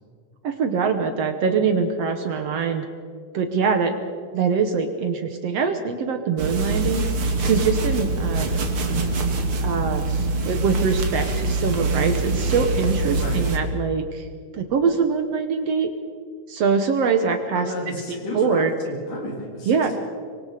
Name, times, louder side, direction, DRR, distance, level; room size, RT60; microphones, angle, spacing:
voice 1, 0.4-2.9 3.3-3.9 4.3-7.1 7.4-8.5 9.6-14.3 14.5-15.9 16.5-17.7 18.3-18.7 19.7-19.9, right 5 dB, 60° right, 7 dB, 1.9 m, -23 dB
sound 1, 6.4-13.6, right 2 dB, 45° right, 2.5 m, -24 dB
voice 2, 17.5-20.0, left 1 dB, 80° left, 0 dB, 5.4 m, -32 dB
25.5 x 23.0 x 5.0 m, 2.1 s
omnidirectional pair, 3.7 m